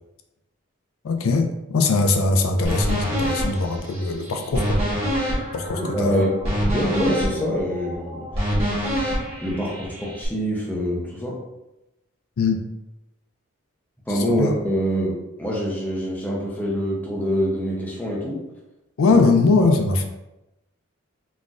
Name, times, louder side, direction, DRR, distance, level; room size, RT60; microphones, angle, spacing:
voice 1, 1.0-4.8 5.5-6.3 12.4-12.6 14.1-14.5 19.0-20.0, left 3 dB, 75° left, 5 dB, 0.4 m, -21 dB
sound 1, 2.6-10.3, equal, 25° right, 1.1 m, -26 dB
voice 2, 5.8-6.3 6.6-8.3 9.4-11.4 14.1-18.4 19.1-19.2 19.6-19.7, equal, 10° left, -3 dB, 0.5 m, -25 dB
3.9 x 2.4 x 2.3 m, 0.93 s
head